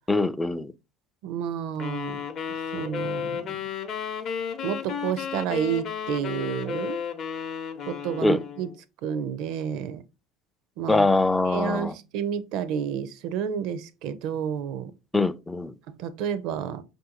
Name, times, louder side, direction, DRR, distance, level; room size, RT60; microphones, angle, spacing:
voice 1, 0.1-0.7 8.2-8.4 10.9-11.9 15.1-15.7, left 2 dB, 10° left, 0.3 m, -23 dB
voice 2, 1.2-2.2 2.7-3.6 4.6-7.0 7.9-8.7 9.0-10.0 10.8-11.1 11.4-14.9 15.9-16.8, right 8 dB, 65° right, 0.5 m, -30 dB
sound 1, 1.8-8.7, left 7 dB, 50° left, 0.7 m, -33 dB
5.5 x 2.6 x 2.8 m
hypercardioid pair, 75°, 0 cm